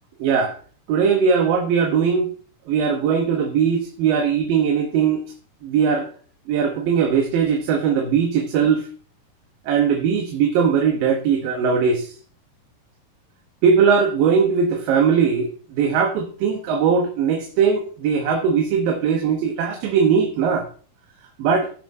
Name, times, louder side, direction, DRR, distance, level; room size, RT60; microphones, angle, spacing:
voice 1, 0.2-0.5 0.9-2.3 2.7-5.2 5.6-6.1 6.5-8.9 9.7-12.1 13.6-20.7 21.4-21.7, right 6 dB, 80° right, 3 dB, 2.8 m, -20 dB
18.0 x 6.1 x 2.7 m, 0.42 s
omnidirectional pair, 4.1 m